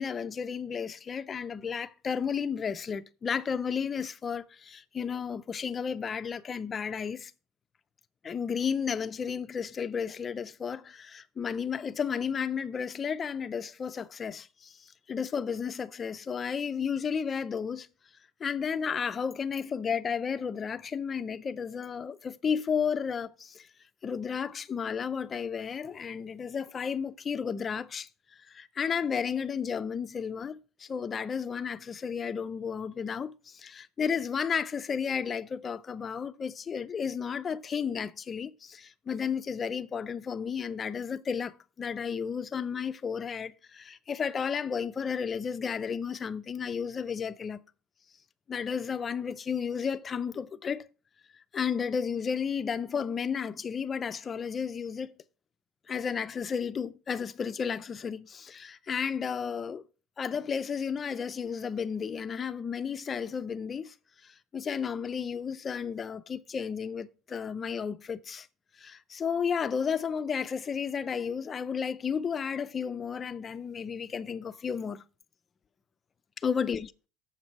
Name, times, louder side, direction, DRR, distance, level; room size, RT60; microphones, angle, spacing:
voice 1, 0.0-7.3 8.2-17.9 18.4-23.7 24.0-28.1 28.5-47.6 48.5-50.9 51.5-55.1 55.9-59.8 60.2-63.9 64.2-68.5 68.8-75.0 76.4-76.9, left 6 dB, 20° left, 0.4 m, -33 dB
7.3 x 6.1 x 5.4 m
cardioid pair, 150°, 0 cm